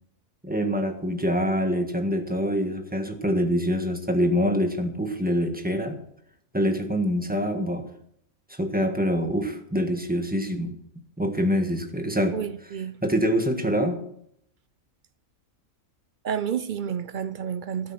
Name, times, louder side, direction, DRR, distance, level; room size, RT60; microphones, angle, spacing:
voice 1, 0.4-6.0 6.5-7.8 8.5-10.7 11.2-12.4 13.0-14.0, equal, 5° right, 1.4 m, -25 dB
voice 2, 12.3-13.0 16.2-17.9, right 8 dB, 60° right, 0.5 m, -30 dB
13.0 x 9.7 x 6.1 m
omnidirectional pair, 1.5 m